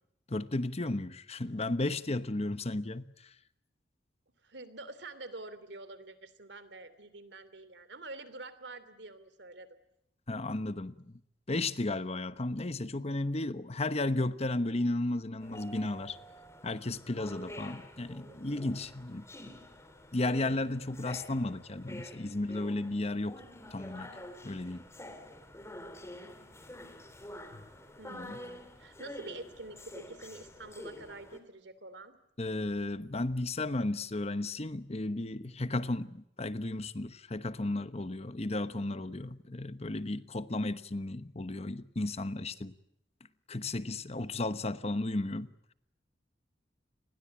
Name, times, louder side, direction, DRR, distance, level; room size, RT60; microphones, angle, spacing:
voice 1, 0.3-3.3 10.3-11.2 11.5-16.2 16.6-19.5 20.1-23.4 23.7-24.1 24.4-24.8 27.5-27.6 28.1-28.4 32.4-42.7 43.5-45.5, left 2 dB, 35° left, 1.1 m, -34 dB
voice 2, 4.4-9.8 18.2-18.7 28.0-32.2 38.7-39.2, right 2 dB, 70° right, 2.9 m, -47 dB
sound 1, 15.4-31.4, left 1 dB, 15° left, 3.4 m, -48 dB
29.0 x 21.0 x 8.5 m
head